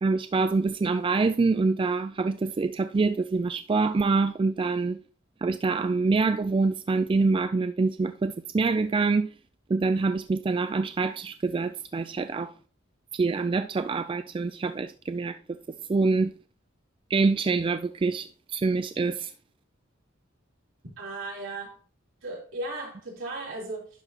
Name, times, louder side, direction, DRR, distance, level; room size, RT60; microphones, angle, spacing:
voice 1, 0.0-5.0 5.4-9.3 9.7-12.5 13.1-15.4 15.9-16.3 17.1-19.3, right 3 dB, 25° right, 0.3 m, -25 dB
voice 2, 21.0-21.8 22.2-23.9, right 2 dB, 75° right, 3.6 m, -36 dB
11.0 x 5.9 x 2.9 m
head